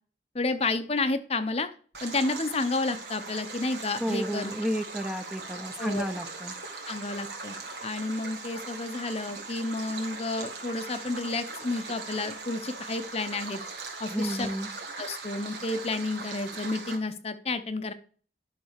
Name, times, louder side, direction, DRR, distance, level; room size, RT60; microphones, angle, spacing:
voice 1, 0.3-1.7 2.0-4.5 5.8-6.0 6.9-7.6 7.8-13.6 14.0-14.5 15.0-17.9, left 3 dB, 35° left, 10 dB, 0.7 m, -31 dB
Stream, 1.9-17.0, right 3 dB, 75° right, 2.2 m, -40 dB
voice 2, 4.0-6.5 14.1-14.7, equal, 5° right, 7 dB, 0.7 m, -32 dB
11.5 x 4.0 x 6.5 m, 0.43 s
head